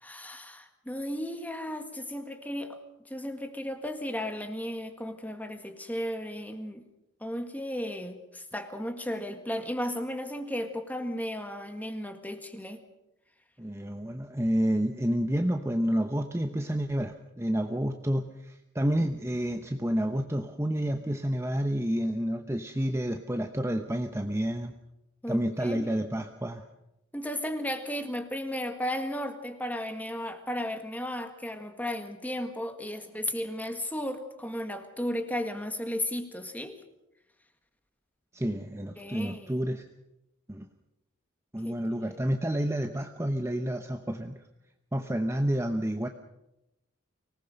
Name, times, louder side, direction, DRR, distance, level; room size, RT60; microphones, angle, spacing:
voice 1, 0.0-2.8 3.1-6.8 7.2-12.8 25.2-25.9 27.1-36.8 39.0-39.6 41.6-41.7, left 1 dB, 10° left, 7 dB, 1.8 m, -35 dB
voice 2, 13.6-24.7 25.3-26.6 38.3-39.8 40.5-40.7 41.5-44.3 44.9-46.1, equal, 15° right, 6 dB, 0.8 m, -29 dB
25.0 x 19.0 x 6.6 m, 0.89 s
head